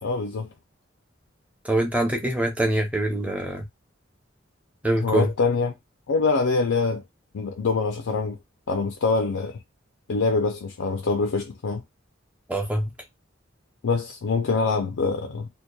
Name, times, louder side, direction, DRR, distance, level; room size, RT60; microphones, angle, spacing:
voice 1, 0.0-0.5 5.0-5.7 6.1-7.0 7.3-8.4 8.7-9.6 10.1-11.8 13.8-15.5, left 4 dB, 85° left, 0.5 m, -24 dB
voice 2, 1.6-3.7 4.8-5.3 12.5-12.9, right 1 dB, 5° right, 0.6 m, -24 dB
2.8 x 2.2 x 2.2 m
head